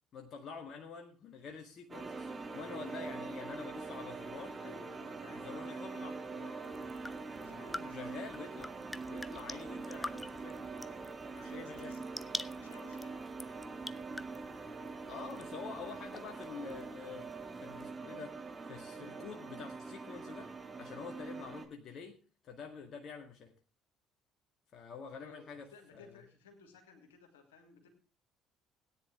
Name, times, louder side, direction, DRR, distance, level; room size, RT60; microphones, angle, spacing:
voice 1, 0.1-4.6 5.3-6.5 7.8-8.7 9.1-10.6 11.4-11.9 15.1-17.3 17.6-18.4 18.7-20.5 20.8-22.2 22.4-23.5 24.7-26.2, left 5 dB, 50° left, 3 dB, 1.9 m, -47 dB
sound 1, 1.9-21.7, right 4 dB, 30° right, 2.5 m, -44 dB
voice 2, 4.6-6.8 7.4-8.0 11.3-13.1 25.1-27.9, left 4 dB, 80° left, 3 dB, 3.0 m, -57 dB
sound 2, 6.6-17.9, left 2 dB, 15° left, 0.8 m, -48 dB
17.5 x 9.9 x 3.5 m, 0.38 s
figure-of-eight pair, 50°, 0 cm